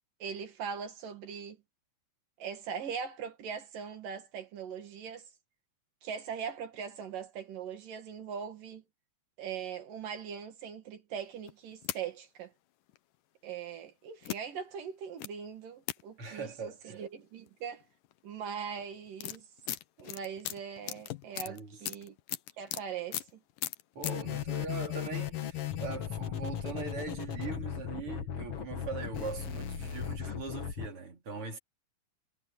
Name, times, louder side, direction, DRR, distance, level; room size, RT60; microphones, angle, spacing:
voice 1, 0.2-1.6 2.4-5.3 6.0-8.8 9.4-12.5 13.4-17.8 18.2-19.5 20.0-22.2 22.6-23.4, right 7 dB, 85° right, 3.8 m, -41 dB
sound 1, 11.5-12.0 12.9-13.0 14.2-14.4 15.2-15.3 15.9-16.0 17.5-17.6 17.8-18.1 18.8-22.8 23.1-23.3 23.6-24.1, left 14 dB, 80° left, 2.5 m, -37 dB
voice 2, 16.2-17.0 21.5-21.8 23.9-31.6, right 4 dB, 40° right, 4.0 m, -41 dB
sound 2, 24.0-30.9, left 9 dB, 55° left, 2.2 m, -37 dB
omnidirectional pair, 3.8 m